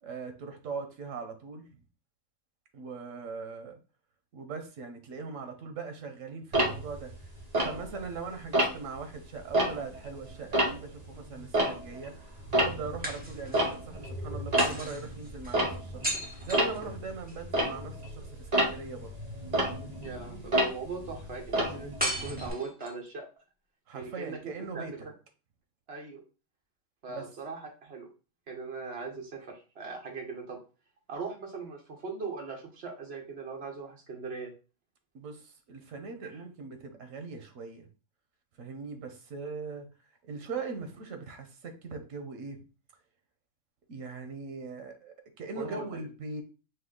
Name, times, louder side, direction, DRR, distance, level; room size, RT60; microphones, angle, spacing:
voice 1, 0.0-1.8 2.7-3.8 4.3-7.1 7.6-12.1 12.5-19.1 23.9-24.9 27.1-27.3 35.1-37.9 38.6-39.9 40.2-42.6 43.9-46.4, right 4 dB, 85° right, 7 dB, 1.2 m, -40 dB
Tick-tock, 6.5-8.2 8.5-9.0 9.4-12.1 12.4-22.5, right 1 dB, 35° right, 1.1 m, -30 dB
sound 1, 9.9-11.0 13.0-13.8 14.6-17.4 22.0-23.1, equal, 10° right, 0.9 m, -37 dB
voice 2, 20.0-23.3 23.9-24.4 24.7-25.1 25.9-26.2 27.0-28.1 28.5-30.6 31.1-34.5 36.2-36.4 45.6-46.0, right 4 dB, 55° right, 2 dB, 1.3 m, -40 dB
5.4 x 2.2 x 3.8 m, 0.34 s
omnidirectional pair, 1.3 m